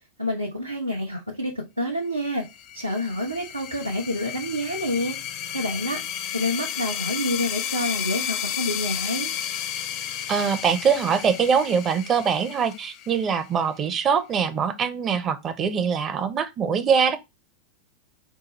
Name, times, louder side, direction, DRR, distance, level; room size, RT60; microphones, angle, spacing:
voice 1, 0.2-2.5 2.7-5.2 5.5-6.0 6.3-9.3, left 1 dB, 90° right, 0.8 m, -28 dB
sound 1, 2.4-13.7, left 10 dB, 40° left, 0.5 m, -32 dB
voice 2, 10.3-17.2, right 6 dB, 25° right, 0.6 m, -23 dB
4.6 x 2.3 x 2.9 m
figure-of-eight pair, 90°, 0 cm